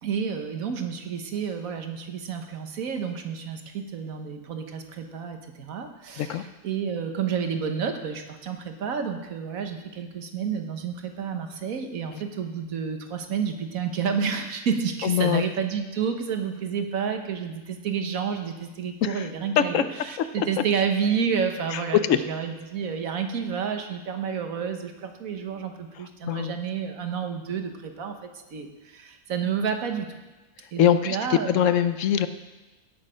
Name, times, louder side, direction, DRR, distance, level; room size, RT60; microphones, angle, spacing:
voice 1, 0.0-30.2 30.7-31.7, right 6 dB, 70° right, 6 dB, 1.5 m, -30 dB
voice 2, 15.0-15.4 19.0-19.3 19.6-19.8 20.2-20.5 21.7-22.2 26.0-26.6 30.8-32.3, left 10 dB, 70° left, 11 dB, 0.9 m, -23 dB
17.0 x 6.4 x 5.0 m, 1.1 s
omnidirectional pair, 1.5 m